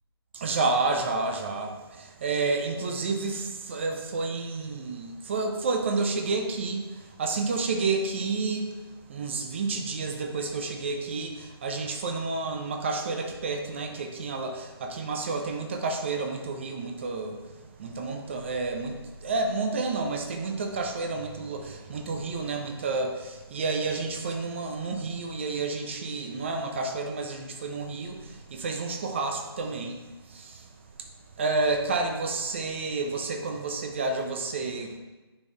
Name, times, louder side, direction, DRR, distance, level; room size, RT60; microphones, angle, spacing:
voice 1, 0.3-8.7 9.1-17.5 17.8-30.7 31.0-31.1 31.4-35.0, right 3 dB, 30° right, 4 dB, 0.5 m, -30 dB
9.5 x 3.8 x 3.3 m, 1.2 s
figure-of-eight pair, 140°, 13 cm